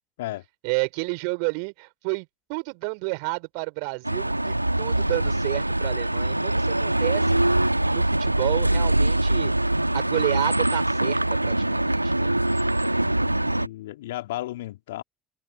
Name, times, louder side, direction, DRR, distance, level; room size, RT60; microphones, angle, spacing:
voice 1, 0.6-7.4 7.9-9.5 9.9-12.4, right 40 dB or more, 65° right, 5.6 m, -30 dB
sound 1, 4.0-13.7, right 1 dB, 90° right, 1.9 m, -23 dB
voice 2, 13.0-15.0, left 16 dB, 70° left, 2.8 m, -34 dB
figure-of-eight pair, 55°, 0 cm